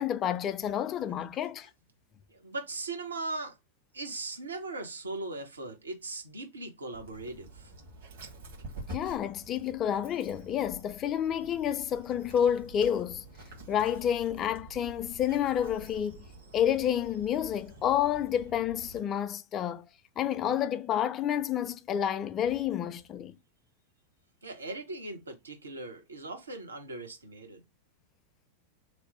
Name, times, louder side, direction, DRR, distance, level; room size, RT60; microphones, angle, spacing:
voice 1, 0.0-1.7 8.9-13.2 13.7-16.3 16.5-19.8 20.2-23.4, left 9 dB, 30° left, 0.3 m, -29 dB
voice 2, 2.3-3.6 3.9-7.7 24.4-27.6, right 2 dB, 75° right, 0.9 m, -39 dB
Dog, 6.9-19.0, right 1 dB, 55° right, 1.5 m, -48 dB
3.0 x 2.0 x 4.1 m
figure-of-eight pair, 90°, 0 cm